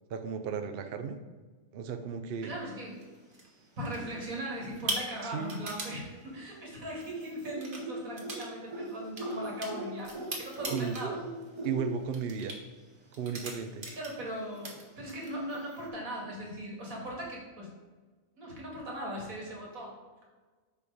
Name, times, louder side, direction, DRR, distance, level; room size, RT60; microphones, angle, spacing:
voice 1, 0.1-1.2 1.7-2.6 5.2-5.6 10.7-11.1 11.6-12.5 13.1-13.9, right 6 dB, 55° right, 8 dB, 0.7 m, -34 dB
voice 2, 2.4-3.0 3.8-11.2 13.9-17.7 18.4-19.9, equal, 85° right, -2 dB, 2.6 m, -39 dB
sound 1, 3.0-3.5 3.9-4.3 4.6-6.0 6.9-7.1 7.5-7.8 8.2-8.5 8.7-11.1 11.4-11.7 12.1-12.6 13.1-14.3 14.5-15.3, right 2 dB, 40° right, 1.5 m, -39 dB
sound 2, 3.1-3.6 3.9-6.0 6.3-12.4 12.6-12.7 12.9-13.0 13.6-15.9, right 1 dB, 25° right, 1.0 m, -42 dB
6.9 x 5.3 x 4.9 m, 1.4 s
omnidirectional pair, 1.4 m